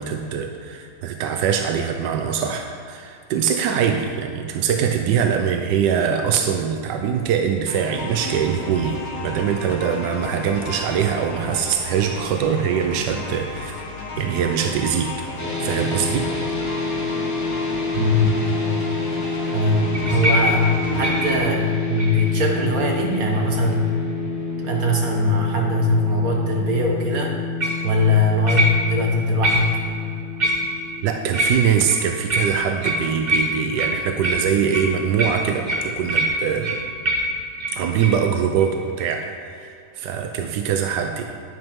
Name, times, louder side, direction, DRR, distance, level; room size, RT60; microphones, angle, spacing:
voice 1, 0.0-9.0 9.2-13.9 14.2-15.1 15.6-16.3 21.3-21.4 31.0-36.8 37.7-41.2, right 8 dB, 85° right, 4 dB, 1.3 m, -23 dB
sound 1, 7.7-21.4, left 3 dB, 60° left, 1.6 m, -34 dB
sound 2, 15.4-31.7, left 3 dB, 10° left, 1.1 m, -28 dB
voice 2, 17.9-18.4 19.5-23.9 24.6-27.3 27.8-29.7, left 1 dB, 60° right, 0 dB, 1.8 m, -21 dB
sound 3, 19.9-22.4 23.0-23.4 27.6-27.9 28.5-29.1 29.4-29.9 30.4-31.0 31.3-38.2 38.6-38.7 39.0-39.1, equal, 30° right, 1.1 m, -25 dB
11.0 x 10.5 x 3.6 m, 2.5 s
omnidirectional pair, 1.8 m